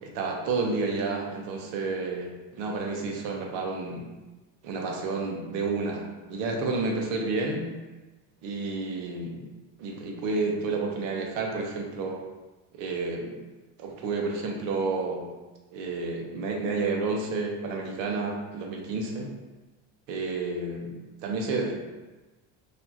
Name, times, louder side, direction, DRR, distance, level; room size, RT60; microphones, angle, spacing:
voice 1, 0.0-4.1 4.6-7.7 8.4-9.5 9.8-12.2 12.7-13.4 13.8-15.3 15.7-19.3 20.1-21.0 21.2-21.7, right 3 dB, 85° right, 0 dB, 0.9 m, -30 dB
4.5 x 2.8 x 2.8 m, 1.2 s
cardioid pair, 160°, 42 cm